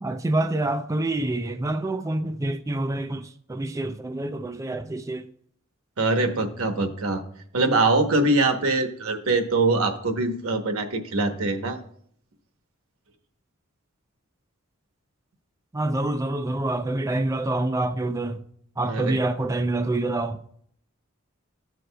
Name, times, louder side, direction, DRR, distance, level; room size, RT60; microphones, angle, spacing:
voice 1, 0.0-5.3 15.7-18.4 18.8-20.4, right 2 dB, 15° right, 0.3 m, -27 dB
voice 2, 6.0-7.2 7.5-11.8 18.9-19.2, right 2 dB, 90° right, 0.9 m, -23 dB
13.5 x 6.3 x 2.2 m
head